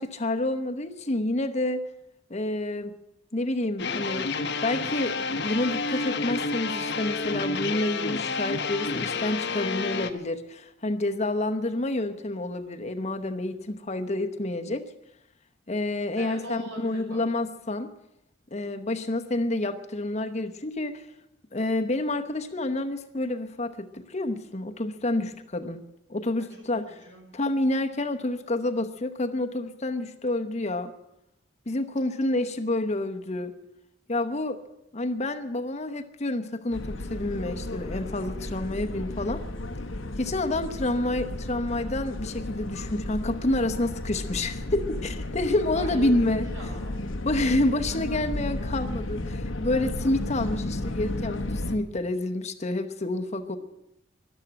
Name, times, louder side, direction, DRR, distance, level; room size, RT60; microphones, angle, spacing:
voice 1, 0.0-1.8 2.3-2.9 3.3-4.3 4.6-5.2 5.4-14.8 15.7-17.9 18.5-21.0 21.5-25.8 26.1-26.8 27.3-30.9 31.7-33.5 34.1-34.6 34.9-39.4 40.2-46.5 47.2-53.6, left 2 dB, 35° left, 7 dB, 0.9 m, -28 dB
sound 1, 3.8-10.1, left 4 dB, 60° left, 1.0 m, -30 dB
voice 2, 16.2-17.2 26.4-26.5 27.0-27.3 45.7-47.1 53.5-53.6, right 1 dB, 70° right, 1 dB, 5.9 m, -41 dB
sound 2, 36.7-51.8, left 1 dB, 90° left, 1.1 m, -33 dB
13.0 x 12.0 x 8.8 m, 0.82 s
head